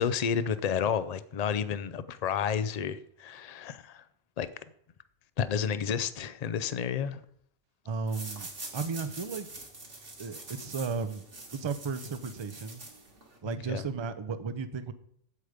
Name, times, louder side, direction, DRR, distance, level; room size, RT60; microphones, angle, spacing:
voice 1, 0.0-4.0 4.4-4.5 5.4-7.2 13.4-13.8, left 7 dB, 55° left, 0.4 m, -31 dB
voice 2, 7.9-9.5 10.2-11.2 11.5-12.8 13.4-14.9, right 5 dB, 35° right, 0.4 m, -34 dB
sound 1, 8.1-13.4, right 2 dB, 70° right, 2.6 m, -45 dB
8.3 x 8.0 x 5.0 m
omnidirectional pair, 1.2 m